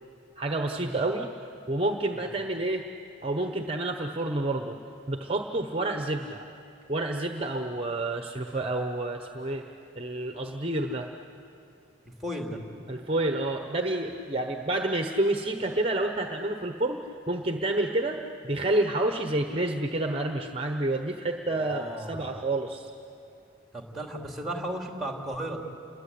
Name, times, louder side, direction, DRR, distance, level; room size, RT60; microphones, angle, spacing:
voice 1, 0.4-1.3 1.7-2.8 3.2-4.8 5.1-6.4 6.9-9.7 9.9-11.1 12.9-22.9, right 2 dB, 30° right, 4 dB, 1.0 m, -29 dB
voice 2, 12.2-12.6 21.5-22.2 23.7-25.6, right 1 dB, ahead, 1 dB, 2.9 m, -35 dB
29.5 x 22.0 x 8.5 m, 2.6 s
head